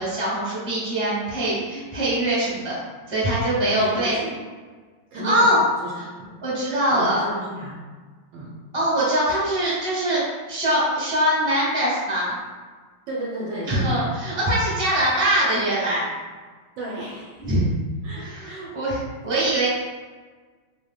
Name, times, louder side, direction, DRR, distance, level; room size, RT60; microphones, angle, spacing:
voice 1, 0.0-2.8 3.1-4.2 5.2-5.6 6.4-7.2 8.7-10.2 10.5-12.4 13.7-16.1 17.4-17.6 18.1-19.7, right 1 dB, 20° right, -8 dB, 0.9 m, -22 dB
voice 2, 3.7-4.4 5.1-5.5 5.8-6.3 6.9-7.8 8.3-8.5 13.1-14.1 16.8-17.5 18.0-18.6, right 1 dB, 70° right, -4 dB, 1.2 m, -33 dB
3.5 x 3.1 x 2.2 m, 1.4 s
omnidirectional pair, 2.2 m